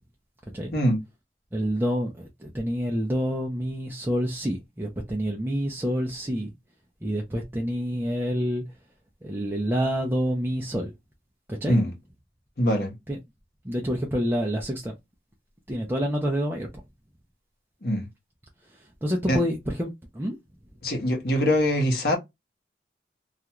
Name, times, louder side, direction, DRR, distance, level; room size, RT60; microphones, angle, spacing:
voice 1, 1.5-6.5 7.0-8.6 9.2-10.9 11.5-11.8 13.1-13.2 13.6-14.9 15.7-16.7 19.0-20.4, equal, 10° right, 0.4 m, -27 dB
voice 2, 12.6-12.9 17.8-18.1 19.3-19.4 20.8-22.2, equal, 60° left, 0.9 m, -23 dB
2.4 x 2.2 x 2.8 m
head